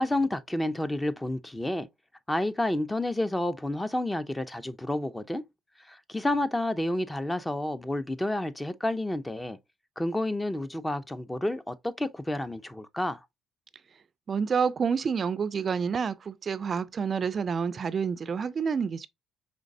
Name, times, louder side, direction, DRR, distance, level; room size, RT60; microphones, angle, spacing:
voice 1, 0.0-1.9 2.3-5.4 5.9-9.6 10.0-13.2, left 1 dB, 10° left, 0.5 m, -30 dB
voice 2, 14.3-19.1, right 6 dB, 45° right, 0.3 m, -28 dB
5.1 x 3.2 x 2.5 m
cardioid pair, 85°, 0 cm